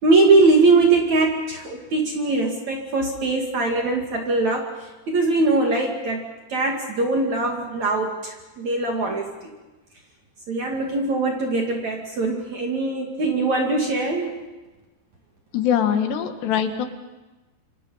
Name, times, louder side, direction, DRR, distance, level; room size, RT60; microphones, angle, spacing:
voice 1, 0.0-4.7 5.1-6.2 6.5-9.5 10.5-14.4, right 3 dB, 50° right, 1 dB, 3.3 m, -21 dB
voice 2, 15.5-16.9, left 8 dB, 90° left, 7 dB, 3.9 m, -22 dB
28.5 x 26.0 x 5.7 m, 1.1 s
omnidirectional pair, 4.7 m